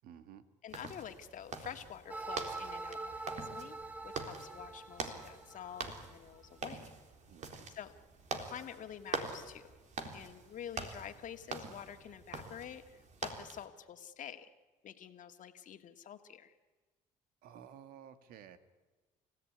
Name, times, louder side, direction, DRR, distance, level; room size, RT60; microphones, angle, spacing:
voice 1, 0.0-0.4 7.3-7.7 17.4-18.6, right 9 dB, 75° right, 10 dB, 2.1 m, -53 dB
voice 2, 0.6-3.8 4.0-6.8 7.7-7.9 8.4-9.7 10.1-14.5 14.8-16.6, left 9 dB, 60° left, 7 dB, 2.1 m, -48 dB
sound 1, 0.7-13.6, right 4 dB, 55° right, 3.8 m, -45 dB
sound 2, 2.1-6.1, right 3 dB, 10° right, 1.3 m, -44 dB
29.0 x 16.0 x 9.7 m, 1.3 s
supercardioid pair, 65°, 15 cm